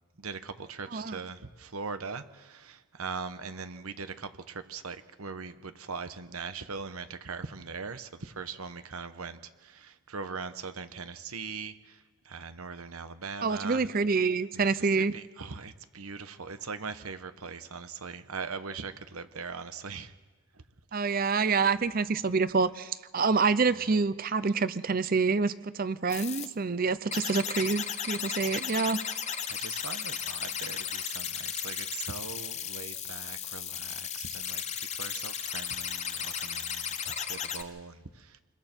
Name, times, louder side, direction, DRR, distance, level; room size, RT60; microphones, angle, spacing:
voice 1, 0.2-14.0 14.5-20.1 20.5-20.6 23.7-23.9 29.5-38.4, right 5 dB, 85° right, 10 dB, 1.1 m, -41 dB
voice 2, 13.4-15.1 20.9-29.0, right 4 dB, 40° right, 15 dB, 0.6 m, -27 dB
sound 1, 26.1-26.5 27.1-37.6, left 8 dB, 30° left, 0.9 m, -35 dB
27.5 x 21.5 x 4.5 m, 1.3 s
head